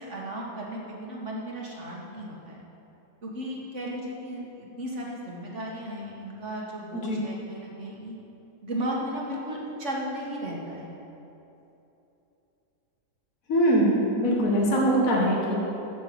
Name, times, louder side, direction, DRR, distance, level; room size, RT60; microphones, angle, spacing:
voice 1, 0.0-2.6 3.2-8.2 8.6-11.0, right 1 dB, 45° right, -3 dB, 2.0 m, -35 dB
voice 2, 13.5-15.5, right 1 dB, 55° left, -4 dB, 2.1 m, -22 dB
9.2 x 6.9 x 7.9 m, 3.0 s
omnidirectional pair, 1.8 m